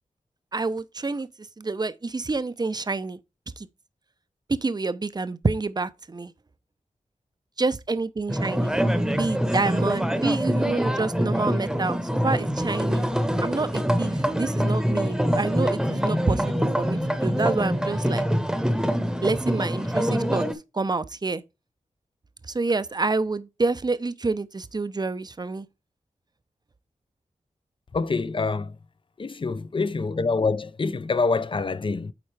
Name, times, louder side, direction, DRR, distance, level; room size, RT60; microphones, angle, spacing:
voice 1, 0.5-1.3 1.6-3.2 3.6-3.7 4.5-6.3 7.6-8.7 9.1-13.1 13.4-18.2 19.2-20.5 20.7-21.4 22.5-25.7, right 3 dB, 30° right, 0.6 m, -28 dB
sound 1, 8.3-20.5, equal, 5° right, 1.0 m, -25 dB
voice 2, 27.9-28.8 29.2-32.1, left 4 dB, 40° left, 0.5 m, -26 dB
8.8 x 4.3 x 3.3 m
wide cardioid pair, 65°, 14 cm